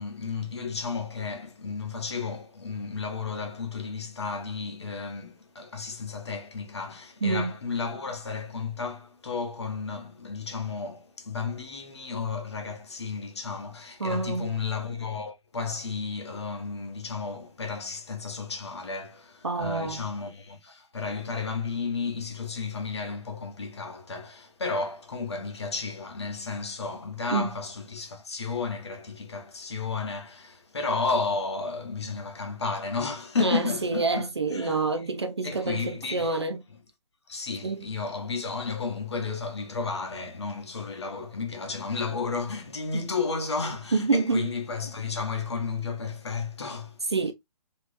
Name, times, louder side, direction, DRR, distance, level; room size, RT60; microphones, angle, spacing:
voice 1, 0.0-35.0 35.4-36.4 36.7-36.8 37.3-47.0, left 4 dB, 40° left, 0.9 m, -33 dB
voice 2, 14.0-14.5 19.4-20.0 27.3-27.5 33.4-36.6 37.6-37.8 42.9-43.0 43.9-44.5 47.1-47.3, right 3 dB, 40° right, 0.4 m, -27 dB
3.4 x 2.9 x 2.5 m
hypercardioid pair, 180°, 21 cm